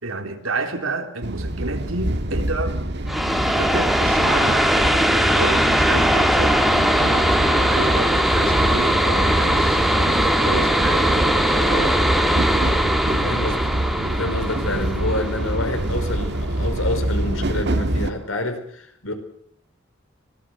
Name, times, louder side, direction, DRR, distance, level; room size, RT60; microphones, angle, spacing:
voice 1, 0.0-2.9 3.2-4.8 5.2-12.2, right 2 dB, 90° right, 5 dB, 3.7 m, -30 dB
sound 1, 1.2-18.1, right 1 dB, 55° right, 1.7 m, -26 dB
sound 2, 3.1-16.4, equal, ahead, 1.8 m, -20 dB
voice 2, 13.2-13.7 14.2-19.1, left 1 dB, 80° left, 8 dB, 4.8 m, -28 dB
25.0 x 19.0 x 7.8 m, 0.64 s
head